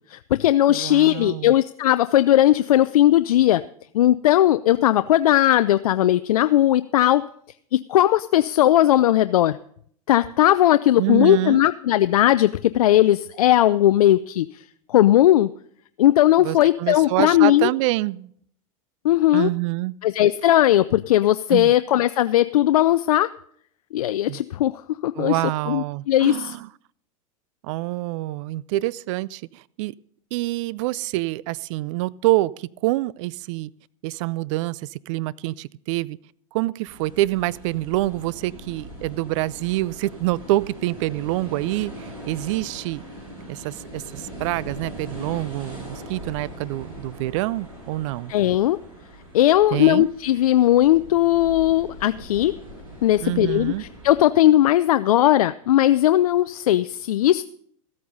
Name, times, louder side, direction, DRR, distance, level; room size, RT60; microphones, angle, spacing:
voice 1, 0.1-3.6 3.9-7.2 7.7-9.6 10.1-14.6 14.9-15.5 16.0-17.7 19.0-19.5 20.0-23.3 23.9-26.6 48.3-48.8 49.3-52.5 53.0-57.4, left 13 dB, 85° left, 13 dB, 0.4 m, -18 dB
voice 2, 0.7-1.5 11.0-11.6 16.4-18.3 19.3-19.9 21.5-21.7 24.3-24.4 25.2-26.7 27.6-29.9 30.3-33.7 34.0-36.2 36.5-43.0 43.5-48.3 49.7-50.1 53.2-53.8, right 18 dB, 60° right, 22 dB, 0.4 m, -26 dB
sound 1, 36.9-54.2, equal, 25° right, 7.2 m, -41 dB
14.5 x 8.6 x 5.3 m, 0.63 s
hypercardioid pair, 115°, 18 cm